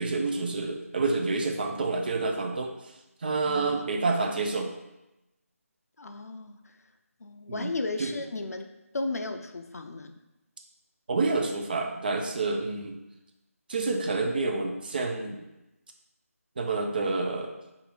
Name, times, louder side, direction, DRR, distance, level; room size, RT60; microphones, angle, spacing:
voice 1, 0.0-2.7 3.2-4.7 7.5-7.7 8.0-8.1 11.1-13.0 13.7-15.4 16.6-17.5, right 3 dB, 35° right, 3 dB, 0.4 m, -28 dB
voice 2, 3.5-3.9 6.0-6.6 7.2-8.7 8.9-10.1, left 3 dB, 75° left, 6 dB, 0.4 m, -34 dB
2.7 x 2.5 x 4.0 m, 0.95 s
figure-of-eight pair, 160°, 8 cm